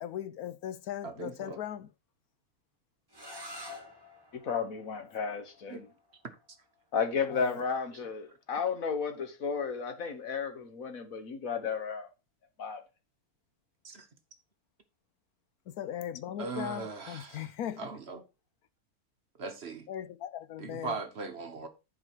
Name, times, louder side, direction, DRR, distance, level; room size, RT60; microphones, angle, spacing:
voice 1, 0.0-1.9 7.3-7.6 15.7-17.9 19.9-20.9, left 10 dB, 80° left, 1.2 m, -38 dB
voice 2, 1.0-1.6 5.7-5.9 6.2-6.4 7.9-8.0 8.3-8.4 13.8-14.1 16.4-17.5 17.8-18.2 19.4-19.9 20.6-21.7, right 4 dB, 50° right, 1.1 m, -39 dB
sound 1, 3.1-8.8, left 1 dB, 15° right, 1.8 m, -50 dB
voice 3, 4.3-5.8 6.9-12.1 12.6-12.8, left 6 dB, 65° left, 1.6 m, -33 dB
11.0 x 5.0 x 4.6 m
omnidirectional pair, 1.6 m